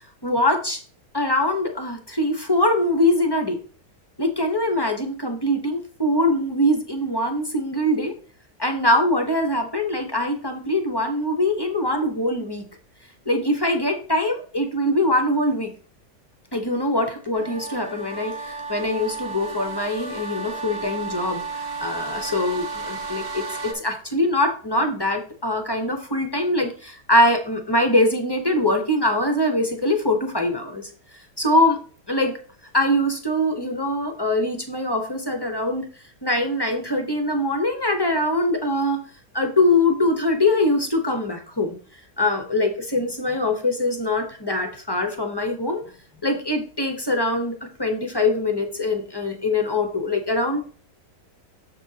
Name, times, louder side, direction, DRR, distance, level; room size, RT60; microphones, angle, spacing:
voice 1, 0.2-0.8 1.1-3.6 4.2-8.1 8.6-12.7 13.3-15.7 16.5-30.9 31.4-31.8 32.1-32.4 32.7-35.9 36.2-39.0 39.3-41.8 42.2-45.8 46.2-50.6, left 1 dB, 20° left, 4 dB, 0.6 m, -23 dB
sound 1, 17.3-23.7, right 4 dB, 50° right, 1.3 m, -33 dB
6.9 x 6.8 x 2.8 m, 0.41 s
omnidirectional pair, 1.8 m